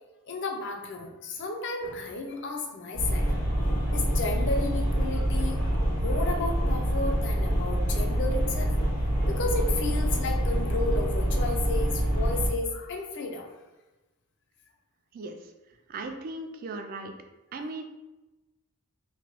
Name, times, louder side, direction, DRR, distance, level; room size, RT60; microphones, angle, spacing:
voice 1, 0.3-3.3 3.7-8.7 9.3-13.5, left 3 dB, 55° left, 3 dB, 0.5 m, -33 dB
sound 1, 2.9-12.5, equal, 75° left, 1.1 m, -26 dB
voice 2, 15.9-17.1 17.5-17.8, right 2 dB, 40° right, 5 dB, 0.3 m, -37 dB
2.9 x 2.2 x 2.9 m, 1.1 s
head